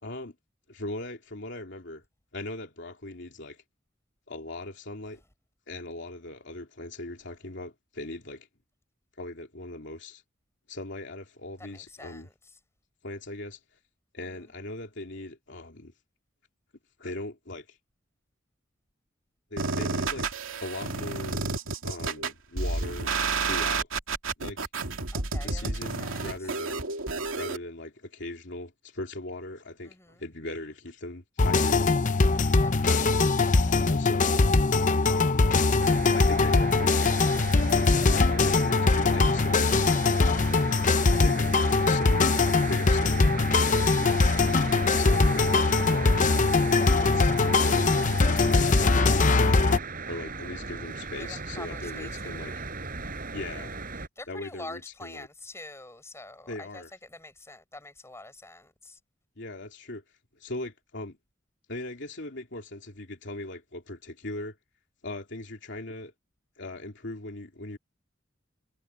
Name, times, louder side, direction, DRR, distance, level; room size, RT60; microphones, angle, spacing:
voice 1, 0.0-0.3 0.7-2.0 2.3-3.6 4.3-5.2 5.7-8.5 9.2-10.2 10.7-12.3 13.0-13.6 14.1-15.9 17.0-17.8 19.5-20.3 20.6-21.4 21.8-23.1 23.4-23.9 24.4-24.6 25.4-26.8 27.4-31.9 32.9-33.4 33.8-34.5 35.1-35.6 36.1-37.2 38.0-39.7 40.1-40.5 41.2-41.6 41.9-46.5 47.0-49.8 50.1-52.5 53.3-53.7 54.3-55.3 56.5-56.9 59.4-60.0 60.4-61.2 61.7-64.5 65.0-66.1 66.6-67.8, left 2 dB, 60° left, 3.0 m, -39 dB
voice 2, 11.6-12.3 14.2-14.5 25.1-26.3 29.8-30.2 32.6-33.2 51.2-52.7 54.2-59.0, left 2 dB, 15° left, 7.3 m, -46 dB
sound 1, 19.6-27.6, right 4 dB, 80° right, 2.8 m, -30 dB
sound 2, 31.4-49.8, left 3 dB, 40° left, 0.7 m, -22 dB
sound 3, 35.8-54.1, right 4 dB, 45° right, 7.2 m, -37 dB
head